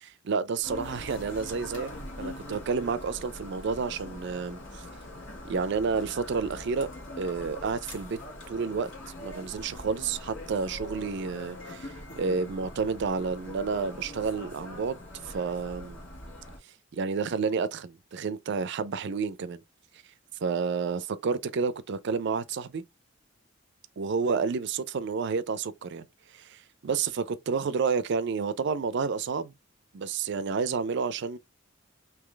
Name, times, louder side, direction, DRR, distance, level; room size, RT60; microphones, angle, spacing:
voice 1, 0.0-1.9 2.2-4.9 5.5-6.9 7.2-8.2 8.5-8.9 9.2-15.0 15.2-16.0 16.9-19.6 20.4-22.8 24.0-26.1 26.3-29.5 29.9-31.4, right 5 dB, 60° right, 0.4 m, -30 dB
sound 1, 0.6-16.6, left 1 dB, 65° left, 1.7 m, -43 dB
3.8 x 2.8 x 3.2 m
head